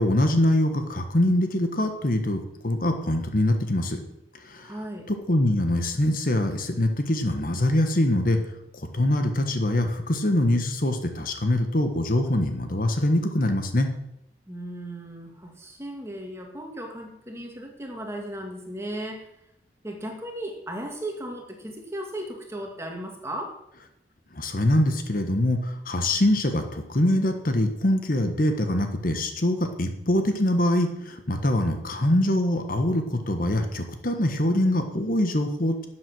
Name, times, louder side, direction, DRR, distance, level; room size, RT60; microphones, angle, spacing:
voice 1, 0.0-4.0 4.4-4.7 5.1-8.4 8.9-13.9 24.3-35.9, left 1 dB, 50° left, 6 dB, 1.3 m, -24 dB
voice 2, 4.6-5.1 14.5-19.3 19.8-23.6, right 1 dB, 15° right, 2 dB, 2.1 m, -36 dB
12.5 x 7.8 x 6.2 m, 0.81 s
head